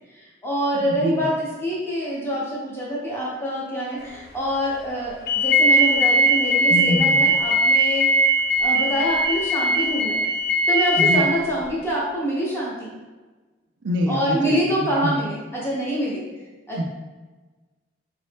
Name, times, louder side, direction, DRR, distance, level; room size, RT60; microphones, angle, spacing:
voice 1, 0.1-8.1 8.6-10.2 10.7-12.9 14.1-16.2 16.7-16.8, equal, 10° left, -6 dB, 0.9 m, -26 dB
voice 2, 0.7-1.3 6.7-7.2 11.0-11.3 13.8-15.2 16.8-16.9, equal, 65° right, 2 dB, 0.4 m, -25 dB
sound 1, 5.3-11.2, right 1 dB, 50° left, 0.4 m, -19 dB
3.8 x 2.7 x 3.4 m, 1.3 s
head